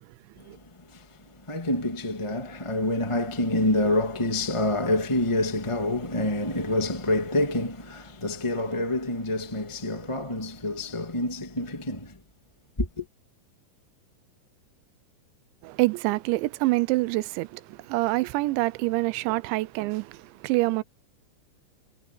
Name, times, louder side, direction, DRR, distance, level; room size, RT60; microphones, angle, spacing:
voice 1, 1.5-12.1 12.8-13.0, left 1 dB, 10° left, 1.5 m, -27 dB
voice 2, 15.6-20.8, right 21 dB, 80° right, 2.9 m, -26 dB
omnidirectional pair, 5.3 m